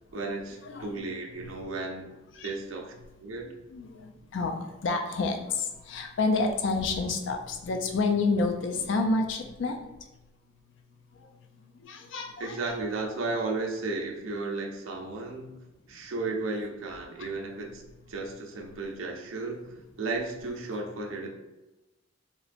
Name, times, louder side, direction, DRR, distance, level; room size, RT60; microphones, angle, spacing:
voice 1, 0.1-2.1 2.4-2.9 3.2-3.5 12.4-15.6 15.9-17.8 18.1-19.6 20.0-21.3, right 3 dB, 90° right, 1 dB, 0.5 m, -34 dB
voice 2, 0.6-1.0 2.4-2.5 3.7-9.7 11.2-11.3 11.8-12.7 17.2-17.3, left 3 dB, 65° left, 4 dB, 0.4 m, -29 dB
3.0 x 2.5 x 2.4 m, 1.0 s
head